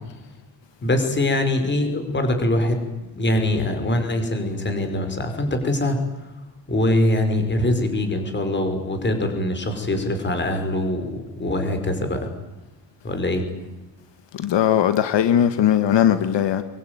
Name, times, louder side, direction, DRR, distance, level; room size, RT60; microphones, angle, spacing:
voice 1, 0.8-6.0 6.7-12.3 13.0-13.5, left 1 dB, 25° left, 5.2 m, -23 dB
voice 2, 14.3-16.6, left 10 dB, 85° left, 1.7 m, -19 dB
25.0 x 22.5 x 9.7 m
wide cardioid pair, 170°, 42 cm